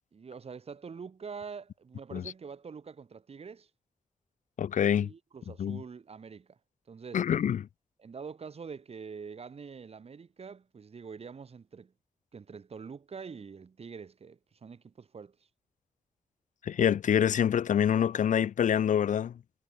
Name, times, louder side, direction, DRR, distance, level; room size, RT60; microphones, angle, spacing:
voice 1, 0.1-3.7 4.9-6.6 6.9-7.2 8.0-11.9 12.3-15.4, right 5 dB, 50° right, 4.0 m, -45 dB
voice 2, 4.6-5.1 5.6-5.8 7.1-7.7 16.6-19.3, left 9 dB, 70° left, 0.5 m, -26 dB
wide cardioid pair, 150°, 13 cm